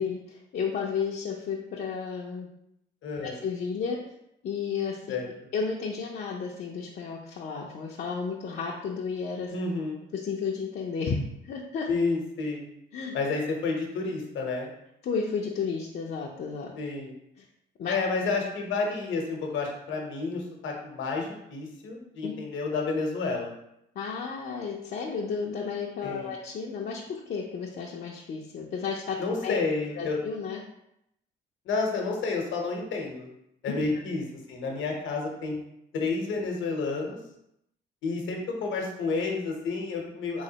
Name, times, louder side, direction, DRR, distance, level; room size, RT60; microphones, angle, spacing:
voice 1, 0.0-2.5 3.2-4.0 4.4-5.2 5.5-9.5 10.1-11.2 11.5-11.9 12.9-13.2 15.0-16.7 17.4-17.5 17.8-17.9 22.2-22.3 24.0-29.2 29.4-29.6 30.0-30.6 33.7-33.8, left 5 dB, 55° left, -2 dB, 0.5 m, -32 dB
voice 2, 3.0-3.4 5.1-5.3 9.5-10.0 11.9-12.6 13.1-14.7 16.8-17.1 17.9-23.5 26.0-26.3 29.2-30.2 31.7-33.3 33.6-35.5 35.9-37.2 38.0-40.4, left 4 dB, 75° left, 1 dB, 0.9 m, -30 dB
3.5 x 3.1 x 2.8 m, 0.79 s
cardioid pair, 90°, 20 cm